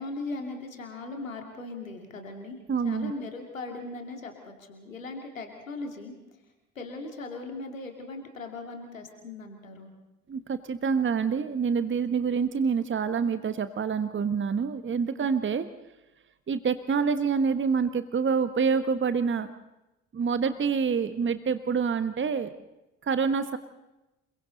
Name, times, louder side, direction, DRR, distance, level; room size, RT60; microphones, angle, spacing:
voice 1, 0.0-6.2 6.7-9.9 15.2-15.3, left 3 dB, 85° left, 3 dB, 2.8 m, -39 dB
voice 2, 2.7-3.1 10.3-15.6 16.5-19.5 20.1-22.5 23.0-23.6, right 6 dB, 30° right, 11 dB, 1.4 m, -27 dB
28.5 x 23.0 x 4.1 m, 0.98 s
figure-of-eight pair, 50°, 39 cm